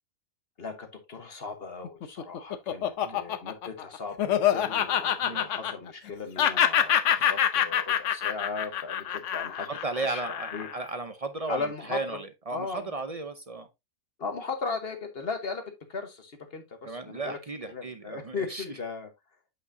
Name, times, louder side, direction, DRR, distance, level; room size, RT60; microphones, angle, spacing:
voice 1, 0.6-10.7 11.5-12.2 12.5-12.9 14.2-17.4 17.7-19.1, left 4 dB, 45° left, 1.4 m, -37 dB
Laughter, 1.8-6.1 6.4-10.8, left 10 dB, 65° left, 1.0 m, -26 dB
voice 2, 9.6-13.7 16.8-18.6, right 3 dB, 45° right, 0.4 m, -35 dB
8.2 x 5.4 x 2.7 m
omnidirectional pair, 1.5 m